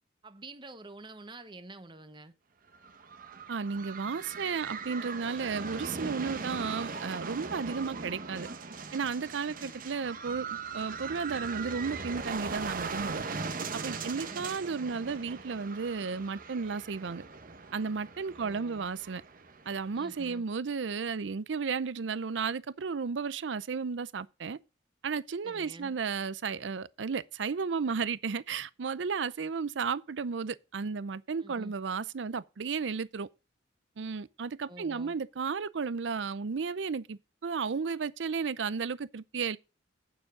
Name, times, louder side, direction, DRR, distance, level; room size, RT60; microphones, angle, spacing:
voice 1, 0.2-2.3 9.5-9.8 13.9-14.4 18.4-18.8 19.9-20.4 25.4-26.0 31.4-31.7 34.7-35.2, right 2 dB, 25° right, 1.1 m, -48 dB
sound 1, 2.7-20.4, right 4 dB, 50° right, 0.9 m, -40 dB
voice 2, 3.5-8.5 8.9-13.2 13.7-17.2 17.7-19.2 19.7-24.6 25.0-33.3 34.0-39.6, right 5 dB, 80° right, 0.5 m, -33 dB
9.0 x 7.2 x 5.0 m
head